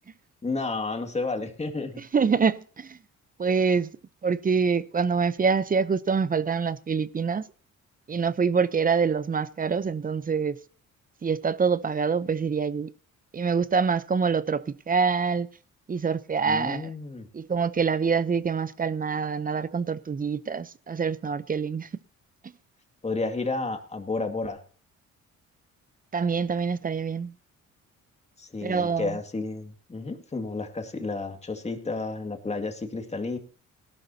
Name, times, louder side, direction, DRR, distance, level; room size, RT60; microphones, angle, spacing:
voice 1, 0.4-2.0 16.4-17.3 23.0-24.6 28.4-33.4, left 3 dB, 20° left, 2.3 m, -31 dB
voice 2, 2.1-3.0 3.4-3.9 4.2-7.5 8.1-10.6 11.2-12.9 13.3-15.5 15.9-16.9 17.3-21.9 26.1-27.3 28.6-29.2, right 5 dB, 30° right, 0.7 m, -25 dB
18.0 x 12.0 x 2.8 m
cardioid pair, 90°, 30 cm